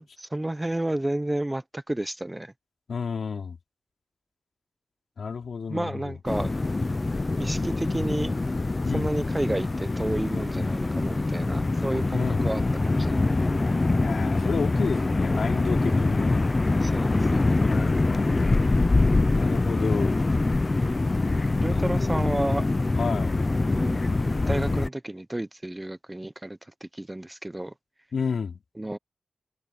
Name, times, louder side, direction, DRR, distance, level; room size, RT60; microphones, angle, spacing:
voice 1, 0.0-2.5 5.7-6.5 7.4-8.3 8.9-13.4 16.7-17.6 21.6-22.7 23.5-24.0 24.5-27.7 28.8-29.0, right 1 dB, 10° right, 0.9 m, -31 dB
voice 2, 2.9-3.6 5.2-6.1 8.8-9.0 12.1-12.5 14.0-16.5 17.6-18.8 19.3-20.3 21.7-22.4 23.0-23.4 28.1-28.6, left 5 dB, 65° left, 3.2 m, -31 dB
sound 1, 6.3-24.9, left 2 dB, 25° left, 0.6 m, -24 dB
wide cardioid pair, 160°, 0 cm